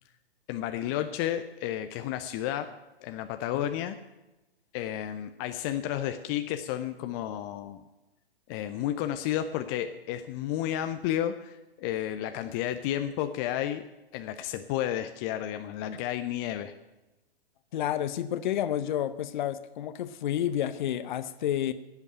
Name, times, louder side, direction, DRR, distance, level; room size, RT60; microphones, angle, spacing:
voice 1, 0.5-2.7 3.0-4.0 4.7-7.8 8.5-13.9 14.1-16.7, left 11 dB, 20° left, 8 dB, 0.5 m, -32 dB
voice 2, 17.7-21.7, left 11 dB, 50° left, 12 dB, 0.8 m, -30 dB
12.0 x 8.2 x 8.8 m, 1.0 s
figure-of-eight pair, 120°, 31 cm